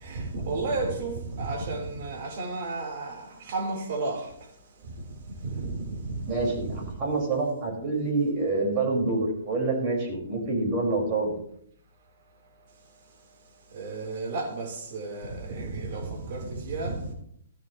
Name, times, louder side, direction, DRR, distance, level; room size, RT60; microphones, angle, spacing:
voice 1, 0.0-4.2 5.4-6.8 13.7-17.0, right 3 dB, 50° right, 3.9 m, -32 dB
voice 2, 6.3-11.3, right 3 dB, 30° right, 5.2 m, -27 dB
15.0 x 13.5 x 3.1 m
hypercardioid pair, 155°, 0 cm